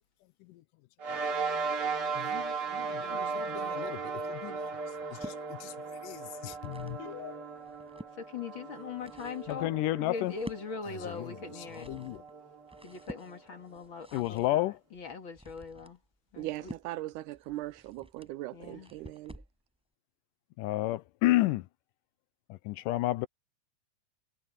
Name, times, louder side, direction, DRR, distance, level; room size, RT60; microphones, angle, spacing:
sound 1, 1.0-13.7, right 5 dB, 45° right, 3.2 m, -37 dB
voice 1, 2.1-4.8 5.1-7.5 9.5-10.3 11.0-11.4 11.8-12.2 14.1-14.8 20.6-21.7 22.5-23.3, left 16 dB, 85° left, 2.2 m, -32 dB
voice 2, 3.0-4.0 8.1-9.7 10.0-11.9 12.8-16.0 16.3-16.7 18.5-18.9, left 5 dB, 45° left, 2.2 m, -42 dB
sound 2, 4.9-5.4 6.2-7.1 7.5-8.2 8.7-19.6, equal, ahead, 7.5 m, -50 dB
voice 3, 16.4-19.4, right 16 dB, 80° right, 2.0 m, -39 dB
omnidirectional pair, 3.8 m